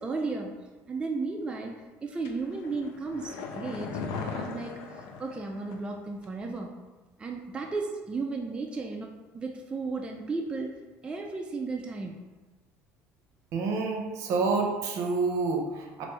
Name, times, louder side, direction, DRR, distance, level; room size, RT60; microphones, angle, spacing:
voice 1, 0.0-1.7 2.0-6.8 7.2-10.8 11.0-12.2, right 3 dB, 15° right, 1 dB, 0.3 m, -34 dB
sound 1, 2.2-6.0 6.2-6.3, left 5 dB, 90° left, 0.4 m, -38 dB
voice 2, 13.5-16.0, right 4 dB, 65° right, 2 dB, 0.6 m, -28 dB
3.0 x 2.5 x 3.3 m, 1.2 s
supercardioid pair, 105°, 6 cm